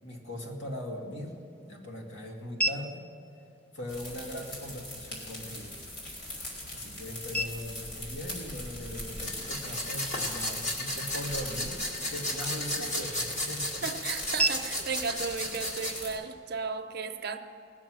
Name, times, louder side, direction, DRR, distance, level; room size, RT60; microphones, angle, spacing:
voice 1, 0.0-1.4 1.6-3.1 3.7-5.8 6.7-11.8 12.1-13.8, left 1 dB, 90° left, 0 dB, 2.3 m, -40 dB
sound 1, 0.8-16.8, right 1 dB, 5° left, 0.7 m, -40 dB
sound 2, 3.9-16.2, left 1 dB, 60° left, 3.9 m, -41 dB
sound 3, 9.2-16.0, left 1 dB, 40° left, 2.0 m, -34 dB
voice 2, 13.8-17.4, right 5 dB, 55° right, 6 dB, 0.8 m, -35 dB
19.5 x 7.2 x 6.2 m, 2.8 s
head